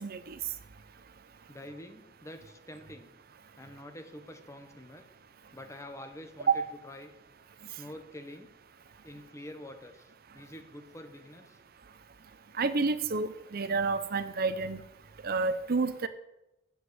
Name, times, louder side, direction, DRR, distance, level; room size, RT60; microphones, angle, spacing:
voice 1, 0.0-0.4 6.5-6.6 12.6-14.8 15.2-16.1, right 4 dB, 50° right, 12 dB, 0.6 m, -29 dB
voice 2, 1.5-3.1 3.6-5.1 5.5-7.1 7.8-8.5 9.0-11.6, left 1 dB, 15° left, 6 dB, 1.1 m, -47 dB
8.0 x 8.0 x 7.9 m, 0.92 s
head